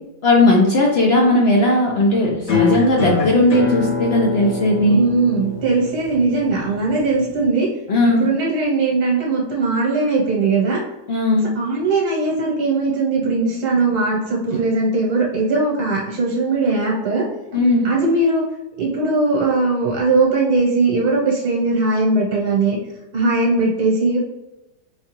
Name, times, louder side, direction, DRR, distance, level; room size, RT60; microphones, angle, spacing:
voice 1, 0.2-5.0 7.9-8.3 11.1-11.5 17.5-17.9, left 2 dB, 70° left, -2 dB, 0.6 m, -16 dB
sound 1, 2.5-7.5, left 5 dB, 50° left, 1.0 m, -24 dB
voice 2, 4.8-7.7 8.0-10.8 11.5-17.2 17.8-18.4 18.8-22.8 23.1-24.2, right 3 dB, 70° right, -3 dB, 1.3 m, -19 dB
5.0 x 2.3 x 2.9 m, 0.98 s
omnidirectional pair, 1.8 m